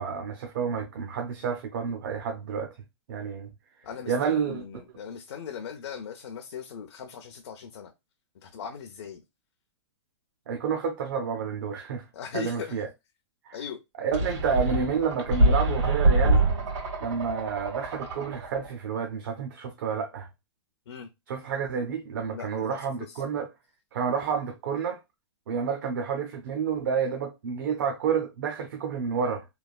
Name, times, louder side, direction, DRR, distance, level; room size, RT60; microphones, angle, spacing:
voice 1, 0.0-2.7 3.1-3.5 4.1-4.6 10.5-12.1 12.3-12.9 13.4-13.6 14.0-16.4 17.0-20.3 21.3-23.5 23.9-25.0 25.5-29.4, right 6 dB, 45° right, 0.5 m, -29 dB
voice 2, 3.8-7.9 8.4-9.2 12.1-12.8 13.5-13.8 20.9-21.1 22.3-23.2, left 7 dB, 60° left, 0.5 m, -39 dB
sound 1, 14.1-18.7, right 2 dB, 85° right, 1.5 m, -25 dB
3.2 x 2.2 x 2.3 m
hypercardioid pair, 170°, 15 cm